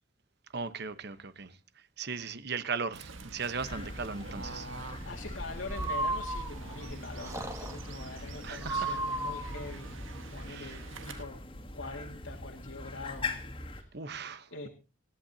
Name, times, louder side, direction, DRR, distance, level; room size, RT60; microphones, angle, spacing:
voice 1, 0.5-1.6 2.0-4.7 8.4-9.0 10.5-10.8 13.9-14.7, right 5 dB, 55° right, 1.1 m, -37 dB
Fowl / Bird, 2.9-11.2, right 3 dB, 75° right, 1.6 m, -47 dB
sound 1, 3.6-13.8, left 2 dB, 25° left, 2.2 m, -42 dB
voice 2, 5.1-10.0 10.3-11.4 11.8-13.9 14.5-14.7, left 3 dB, 80° left, 2.1 m, -44 dB
Breathing, 5.6-6.8 7.2-7.9 8.6-9.7, right 2 dB, 15° right, 1.9 m, -34 dB
26.0 x 12.0 x 2.8 m
head